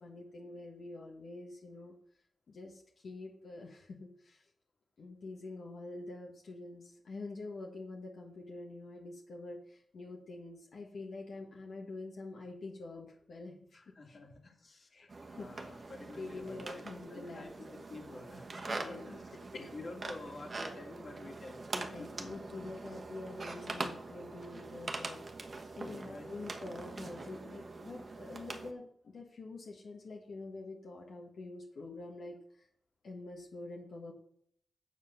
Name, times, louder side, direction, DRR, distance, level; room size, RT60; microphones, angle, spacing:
voice 1, 0.0-1.9 2.5-4.4 5.0-13.8 14.1-14.2 14.9-15.7 16.2-17.7 18.8-19.1 19.5-19.7 21.7-32.7 33.0-34.1, left 2 dB, 65° left, -2 dB, 1.5 m, -46 dB
voice 2, 13.7-19.2 19.7-22.3 22.9-23.0 25.8-26.4, left 2 dB, 40° left, 2 dB, 2.1 m, -50 dB
sound 1, 15.1-28.7, right 3 dB, 40° right, 1.2 m, -43 dB
8.0 x 7.5 x 5.7 m, 0.65 s
wide cardioid pair, 125°, 0 cm